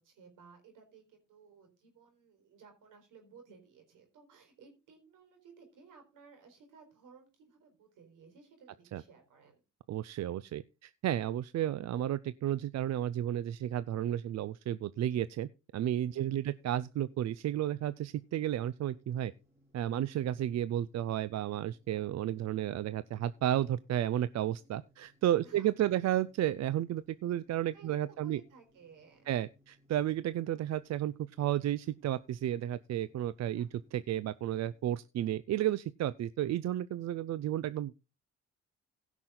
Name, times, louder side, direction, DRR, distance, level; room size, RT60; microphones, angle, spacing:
voice 1, 0.0-9.6 16.1-16.5 25.4-25.7 27.7-29.3 33.6-33.7, right 5 dB, 80° right, 4.3 m, -58 dB
voice 2, 9.9-19.3 19.7-28.4 29.3-37.9, right 12 dB, 60° right, 0.5 m, -32 dB
sound 1, 16.0-34.9, equal, 30° right, 4.7 m, -68 dB
16.5 x 6.0 x 3.8 m
cardioid pair, 85°, 31 cm